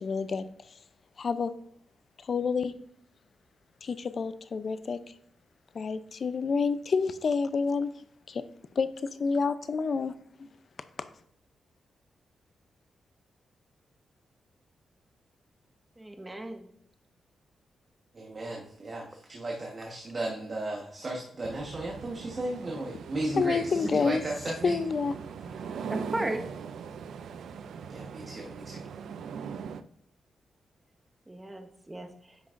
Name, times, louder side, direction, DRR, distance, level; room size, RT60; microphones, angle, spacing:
voice 1, 0.0-0.5 1.2-1.5 2.3-2.7 3.8-5.0 5.7-7.9 8.3-8.4 8.8-8.9 9.2-10.1 23.4-24.2 24.6-25.1, left 5 dB, 55° left, 13 dB, 0.5 m, -28 dB
voice 2, 16.0-16.7 23.7-24.1 25.9-26.4 31.3-32.4, right 1 dB, 15° right, 5 dB, 1.1 m, -36 dB
voice 3, 18.1-24.8 27.9-28.8, right 2 dB, 40° right, -1 dB, 1.3 m, -35 dB
sound 1, 21.4-29.8, right 6 dB, 80° right, 0.4 m, -41 dB
9.5 x 6.1 x 2.5 m, 0.68 s
cardioid pair, 85°, 0 cm